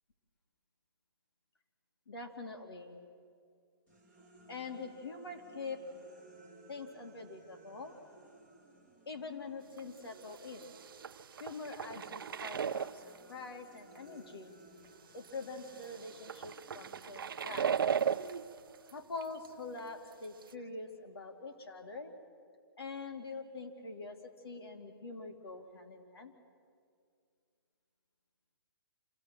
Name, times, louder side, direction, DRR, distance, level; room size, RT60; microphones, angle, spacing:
voice 1, 2.1-3.1 4.5-5.8 6.7-7.9 9.1-10.7 11.4-14.5 15.1-17.7 18.9-22.1 22.8-26.3, left 3 dB, 85° left, 4 dB, 2.7 m, -44 dB
sound 1, 3.9-11.0 11.3-19.9, right 2 dB, 10° left, 2.0 m, -60 dB
sound 2, 9.8-9.9 10.2-13.2 13.9-14.0 15.2-18.9 19.2-19.5 19.8-19.9 20.4-20.5, right 7 dB, 65° right, 0.6 m, -37 dB
26.5 x 16.0 x 7.5 m, 2.3 s
hypercardioid pair, 175°, 13 cm